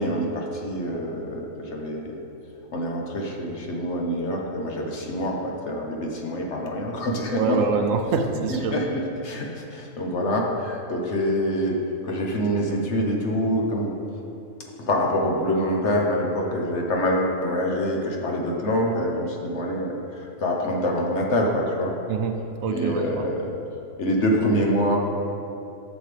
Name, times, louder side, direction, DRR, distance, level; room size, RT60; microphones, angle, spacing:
voice 1, 0.0-2.2 2.7-7.6 8.5-11.8 12.0-13.9 14.9-21.9 22.7-23.5 24.0-25.0, equal, 55° left, 0 dB, 1.2 m, -25 dB
voice 2, 7.3-8.8 22.1-23.3, right 4 dB, 75° right, 5 dB, 1.0 m, -25 dB
10.5 x 7.2 x 3.4 m, 2.7 s
omnidirectional pair, 1.5 m